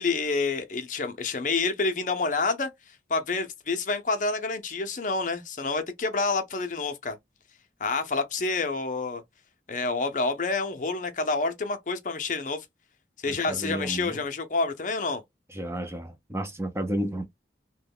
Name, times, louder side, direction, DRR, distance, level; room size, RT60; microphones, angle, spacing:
voice 1, 0.0-2.7 3.1-7.2 7.8-9.2 9.7-12.7 13.2-15.2, left 3 dB, 45° left, 0.6 m, -28 dB
voice 2, 13.3-14.2 15.5-17.3, right 1 dB, 15° right, 0.5 m, -32 dB
3.0 x 2.2 x 3.5 m
head